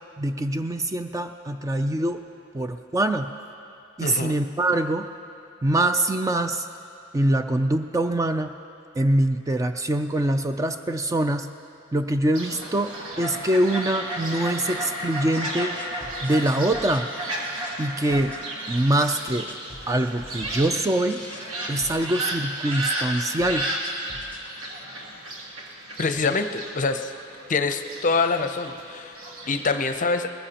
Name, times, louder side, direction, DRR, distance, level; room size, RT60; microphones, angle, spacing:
voice 1, 0.2-2.3 2.5-3.3 4.0-5.1 5.6-6.7 7.1-8.5 9.0-11.5 11.9-15.8 16.2-17.1 17.8-18.3 18.7-19.5 19.9-21.2 21.7-23.7, right 1 dB, 15° right, 7 dB, 0.3 m, -24 dB
voice 2, 4.0-4.4 26.0-27.1 27.5-30.3, left 4 dB, 40° left, 8 dB, 0.6 m, -25 dB
Fowl, 12.3-30.0, right 1 dB, 80° right, 1.9 m, -33 dB
sound 1, 15.3-24.8, left 2 dB, 5° left, 1.0 m, -46 dB
20.5 x 15.0 x 2.9 m, 2.7 s
head